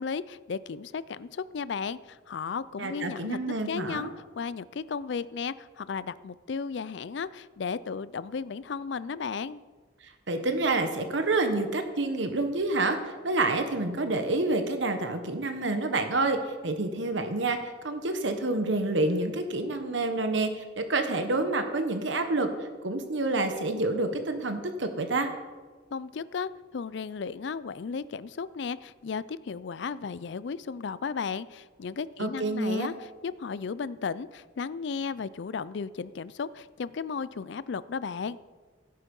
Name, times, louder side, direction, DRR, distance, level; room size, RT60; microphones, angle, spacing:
voice 1, 0.0-9.6 25.9-38.4, left 5 dB, 65° left, 17 dB, 0.4 m, -35 dB
voice 2, 2.8-4.1 10.3-16.4 16.6-25.3 32.2-32.9, right 2 dB, 70° right, 7 dB, 1.2 m, -28 dB
16.0 x 8.4 x 5.4 m, 1.4 s
head